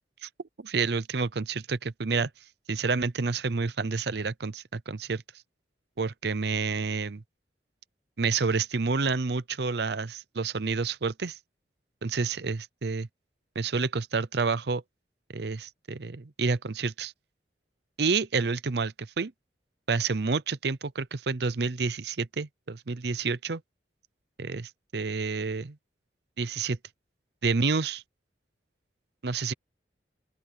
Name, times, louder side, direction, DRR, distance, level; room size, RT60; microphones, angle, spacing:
voice 1, 0.6-2.3 2.7-5.2 6.0-7.2 8.2-11.4 12.0-13.1 13.5-14.8 15.3-17.1 18.0-19.3 19.9-23.6 24.4-25.8 26.4-26.8 27.4-28.0 29.2-29.5, right 4 dB, 65° right, 0.7 m, -29 dB
open air
head